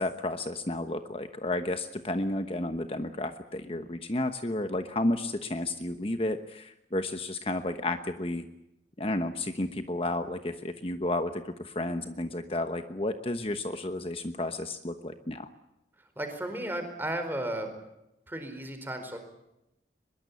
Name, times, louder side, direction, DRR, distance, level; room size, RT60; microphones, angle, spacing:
voice 1, 0.0-8.5 9.0-15.5, left 1 dB, 35° left, 8 dB, 1.1 m, -32 dB
voice 2, 16.2-17.8 18.3-19.2, right 1 dB, 10° right, 6 dB, 4.7 m, -34 dB
23.5 x 21.5 x 8.5 m, 0.87 s
head